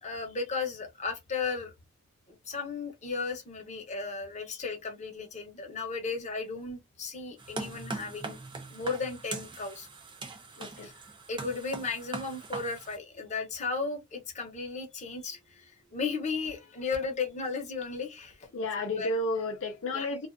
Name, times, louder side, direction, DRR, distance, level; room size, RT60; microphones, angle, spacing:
voice 1, 0.0-1.7 2.3-8.4 8.7-9.9 10.8-10.9 11.3-18.5 18.8-19.1 19.9-20.1, left 4 dB, 35° left, 0.8 m, -35 dB
sound 1, 7.4-13.0, right 3 dB, 20° right, 0.5 m, -41 dB
voice 2, 10.6-10.9 18.5-20.3, left 1 dB, 65° left, 0.5 m, -32 dB
2.4 x 2.3 x 2.5 m
head